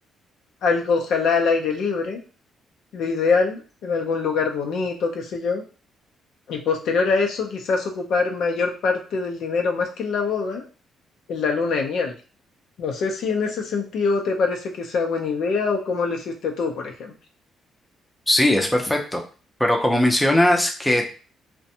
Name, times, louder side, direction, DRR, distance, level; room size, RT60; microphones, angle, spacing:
voice 1, 0.6-2.2 2.9-5.6 6.5-10.6 11.3-12.1 12.8-17.1, left 4 dB, 75° left, 2 dB, 0.5 m, -24 dB
voice 2, 18.3-19.2 19.6-21.1, left 1 dB, 5° left, 2 dB, 0.5 m, -19 dB
2.5 x 2.1 x 2.7 m, 0.37 s
cardioid pair, 90°, 0 cm